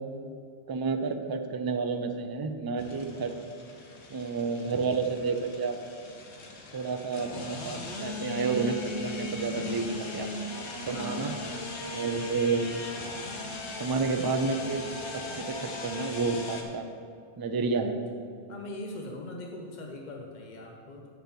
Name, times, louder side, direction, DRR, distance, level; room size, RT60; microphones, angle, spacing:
voice 1, 0.7-3.3 4.1-5.8 6.7-10.3 10.9-11.3 11.9-12.7 13.8-14.9 15.1-16.8 17.4-18.0, right 4 dB, 35° right, 6 dB, 0.4 m, -30 dB
sound 1, 2.8-16.6, left 2 dB, 85° left, 1.3 m, -38 dB
voice 2, 10.9-11.5 12.1-12.2 18.5-21.1, left 2 dB, 45° left, 0 dB, 0.9 m, -41 dB
10.5 x 4.1 x 7.0 m, 2.2 s
omnidirectional pair, 1.1 m